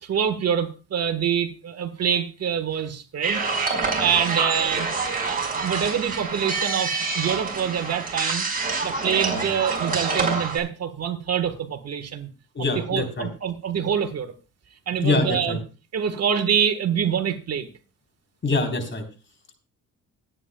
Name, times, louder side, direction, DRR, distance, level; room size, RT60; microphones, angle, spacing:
voice 1, 0.0-8.5 8.8-12.3 12.9-14.3 14.9-15.6 15.9-17.7, right 8 dB, 55° right, 8 dB, 1.5 m, -26 dB
sound 1, 3.2-10.6, right 4 dB, 30° right, 5.0 m, -26 dB
voice 2, 12.5-13.3 15.0-15.6 18.4-19.0, left 3 dB, 40° left, 5 dB, 4.1 m, -24 dB
25.5 x 9.2 x 2.3 m, 0.31 s
cardioid pair, 90°, 30 cm